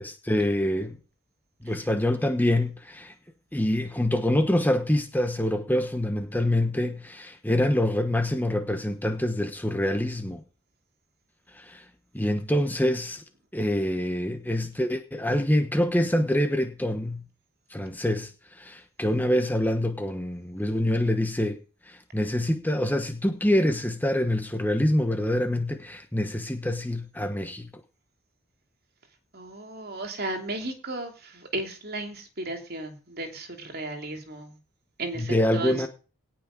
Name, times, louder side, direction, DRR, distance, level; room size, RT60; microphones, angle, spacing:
voice 1, 0.2-1.0 1.6-3.1 3.5-10.4 11.5-11.8 12.1-13.2 13.5-17.2 17.7-21.6 21.9-27.7 35.2-35.9, left 1 dB, 10° left, 1.0 m, -25 dB
voice 2, 29.3-34.6 35.0-35.9, right 2 dB, 45° right, 3.0 m, -35 dB
18.0 x 6.1 x 5.2 m
head